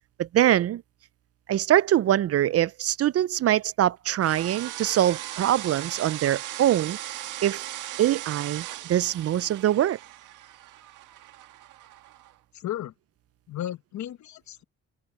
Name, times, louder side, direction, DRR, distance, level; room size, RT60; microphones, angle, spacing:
voice 1, 0.2-0.8 1.5-7.0 7.4-7.6 8.0-10.0, right 12 dB, 50° right, 0.5 m, -23 dB
sound 1, 4.2-12.3, right 14 dB, 90° right, 1.8 m, -38 dB
voice 2, 12.5-12.9 13.5-14.6, left 12 dB, 70° left, 1.1 m, -34 dB
cardioid pair, 90°, 30 cm